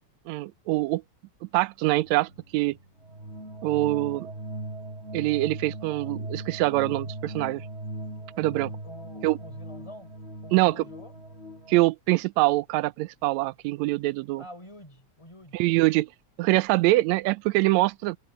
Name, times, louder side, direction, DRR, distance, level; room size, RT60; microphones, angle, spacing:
voice 1, 0.3-1.0 1.5-2.8 3.6-4.3 5.1-7.7 8.4-8.7 9.2-9.4 10.5-10.8 11.7-14.4 15.5-16.1 16.4-18.2, right 19 dB, 80° right, 1.8 m, -24 dB
sound 1, 2.0-11.8, right 1 dB, 20° right, 4.6 m, -39 dB
voice 2, 8.8-10.1 10.4-11.1 14.4-15.6, left 1 dB, 10° left, 5.5 m, -47 dB
omnidirectional pair, 3.3 m